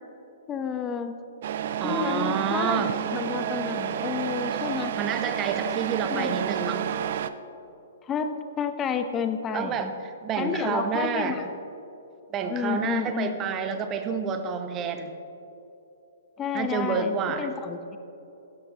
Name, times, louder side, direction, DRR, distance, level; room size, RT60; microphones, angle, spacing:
voice 1, 0.5-1.2 1.8-4.9 6.0-6.4 8.0-9.9 10.4-11.5 12.5-13.4 16.4-17.8, left 6 dB, 20° left, 8 dB, 0.8 m, -30 dB
Truck, 1.4-7.3, right 10 dB, 55° right, 0.5 m, -30 dB
voice 2, 1.8-3.0 5.0-6.9 9.5-11.4 12.3-15.1 16.5-17.5, right 6 dB, 25° right, 7 dB, 0.9 m, -29 dB
16.0 x 12.5 x 2.9 m, 3.0 s
figure-of-eight pair, 120°, 0 cm